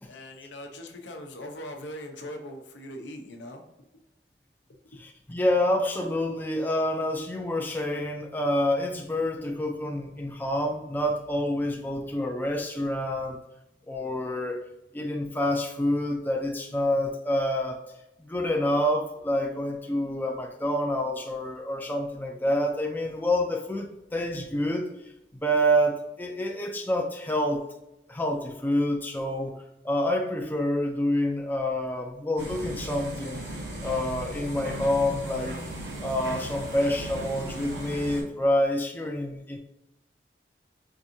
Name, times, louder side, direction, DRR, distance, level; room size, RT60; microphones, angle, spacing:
voice 1, 0.1-3.6, left 1 dB, 90° left, 3 dB, 0.8 m, -40 dB
voice 2, 4.9-13.4 13.9-14.6 14.9-17.8 18.2-24.9 25.3-27.6 28.1-33.5 33.8-35.6 36.0-39.6, left 1 dB, 10° left, 2 dB, 0.4 m, -27 dB
sound 1, 32.4-38.2, right 1 dB, 80° right, 1.2 m, -37 dB
4.6 x 2.6 x 2.7 m, 0.91 s
head